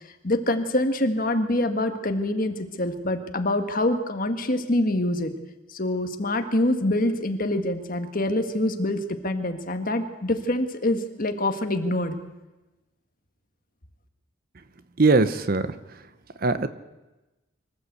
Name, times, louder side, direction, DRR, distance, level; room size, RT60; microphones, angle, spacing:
voice 1, 0.2-5.3 5.7-12.1, left 1 dB, 45° left, 6 dB, 1.6 m, -25 dB
voice 2, 15.0-15.7 16.4-16.7, right 3 dB, 45° right, 12 dB, 0.8 m, -20 dB
24.5 x 13.5 x 8.2 m, 1.1 s
head